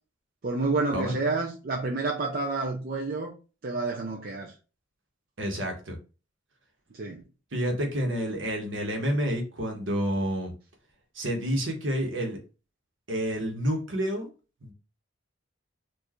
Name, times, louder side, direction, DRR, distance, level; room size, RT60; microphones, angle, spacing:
voice 1, 0.4-3.3 3.6-4.5 6.9-7.2, right 3 dB, 45° right, 0.5 m, -29 dB
voice 2, 5.4-6.0 7.5-10.5 11.1-12.4 13.1-14.3 14.6-14.7, equal, 70° right, 1.3 m, -29 dB
4.4 x 2.6 x 3.0 m
head